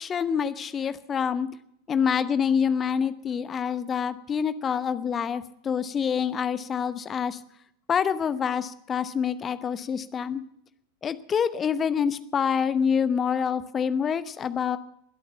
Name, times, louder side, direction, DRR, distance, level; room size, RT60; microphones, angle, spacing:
voice 1, 0.0-1.5 1.9-7.4 7.9-10.4 11.0-14.8, left 7 dB, 20° left, 14 dB, 1.0 m, -26 dB
22.5 x 8.5 x 7.1 m, 0.74 s
figure-of-eight pair, 90°, 0 cm